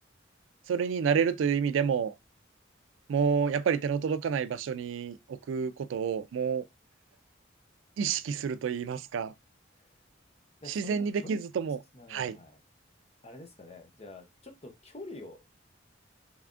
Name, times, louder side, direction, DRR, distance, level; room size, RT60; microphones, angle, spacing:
voice 1, 0.7-2.2 3.1-6.7 8.0-9.3 10.7-11.8 12.1-12.4, right 6 dB, 80° right, 0.3 m, -29 dB
voice 2, 10.6-11.4 11.9-12.6 13.2-15.4, left 2 dB, 30° left, 0.7 m, -47 dB
3.7 x 3.3 x 2.4 m
head